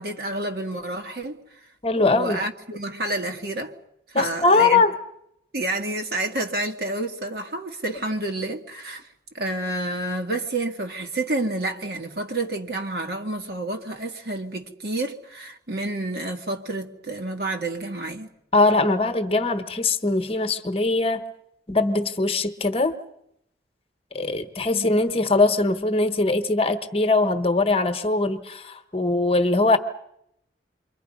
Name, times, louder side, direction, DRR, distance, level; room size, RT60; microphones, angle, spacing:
voice 1, 0.0-1.4 2.0-3.7 4.1-4.8 5.5-9.1 9.3-18.3 24.7-24.9, right 2 dB, 55° right, 2.2 m, -29 dB
voice 2, 1.8-2.4 4.1-5.0 18.5-21.2 21.7-22.9 24.1-29.8, left 3 dB, 30° left, 1.2 m, -21 dB
28.5 x 23.5 x 5.5 m
head